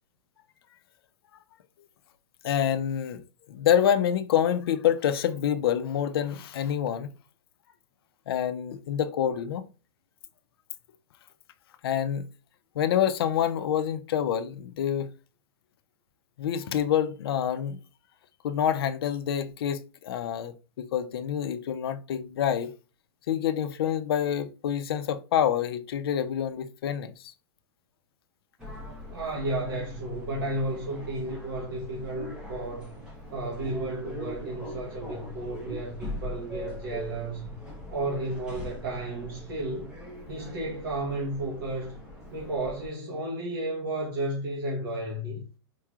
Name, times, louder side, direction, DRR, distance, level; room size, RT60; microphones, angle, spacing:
voice 1, 2.4-3.2 3.5-7.1 8.3-9.7 11.8-12.2 12.8-15.1 16.4-17.8 18.4-22.7 23.3-27.3, left 9 dB, 55° left, 0.5 m, -27 dB
sound 1, 28.6-42.9, left 1 dB, 5° right, 0.9 m, -42 dB
voice 2, 29.1-33.0 33.3-37.5 37.9-39.9 40.3-42.0 42.3-45.4, right 2 dB, 50° right, 1.1 m, -33 dB
4.5 x 3.0 x 2.3 m
supercardioid pair, 180°, 15 cm